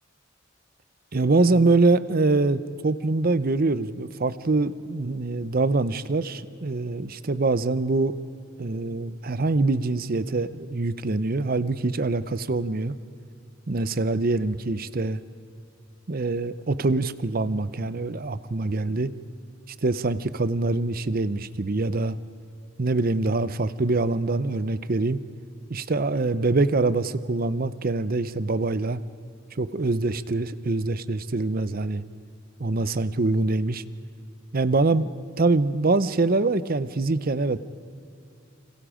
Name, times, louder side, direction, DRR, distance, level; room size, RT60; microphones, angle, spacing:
voice 1, 1.1-8.2 8.6-12.9 13.7-15.2 16.1-19.1 19.8-22.2 22.8-25.2 25.7-29.0 29.6-32.0 32.6-33.8 34.5-35.1 35.4-37.6, right 3 dB, 50° right, 15 dB, 0.7 m, -24 dB
29.0 x 26.5 x 5.1 m, 2.5 s
head